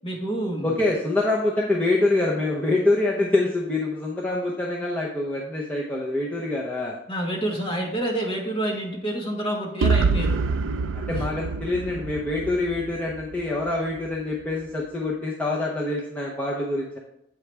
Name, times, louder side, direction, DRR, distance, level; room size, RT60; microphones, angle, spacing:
voice 1, 0.0-0.7 7.1-10.4 11.1-11.3, right 1 dB, 30° left, -1 dB, 1.4 m, -28 dB
voice 2, 0.6-7.0 10.9-17.0, left 2 dB, 10° left, -5 dB, 0.7 m, -25 dB
sound 1, 9.8-13.7, right 4 dB, 85° right, 0.4 m, -26 dB
8.3 x 4.8 x 3.3 m, 0.78 s
head